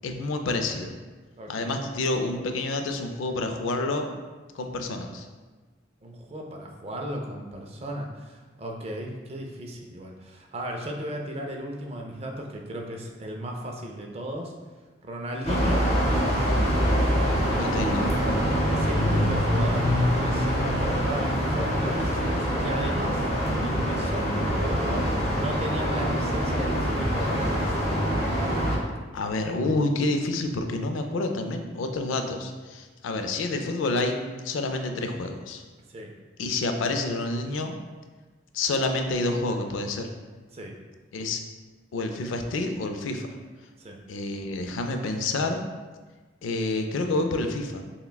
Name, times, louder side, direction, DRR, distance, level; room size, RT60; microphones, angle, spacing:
voice 1, 0.0-0.9 1.5-4.1 4.5-5.3 17.5-18.1 29.1-34.2 34.4-35.6 36.4-37.7 38.5-40.1 41.1-41.4 41.9-43.3 44.1-45.7 46.4-47.8, left 2 dB, 85° left, 5 dB, 0.4 m, -28 dB
voice 2, 1.4-1.8 6.0-14.5 15.0-16.9 18.7-27.8 35.9-36.1 40.5-40.8 43.8-44.0, equal, 30° right, 1 dB, 0.4 m, -35 dB
sound 1, 15.4-28.8, equal, 35° left, 0.6 m, -25 dB
5.6 x 2.2 x 2.2 m, 1.3 s
head